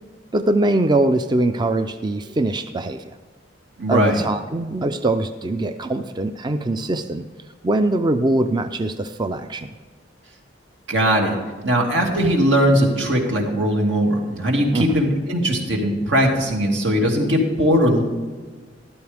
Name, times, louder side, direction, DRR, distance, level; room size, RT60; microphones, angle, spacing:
voice 1, 0.3-3.1 3.9-7.2 7.6-9.7 14.7-15.0, right 2 dB, 25° right, 9 dB, 0.4 m, -22 dB
voice 2, 3.8-4.2 10.9-11.4 11.6-18.0, equal, 85° right, 0 dB, 2.5 m, -19 dB
14.0 x 12.0 x 3.5 m, 1.4 s
head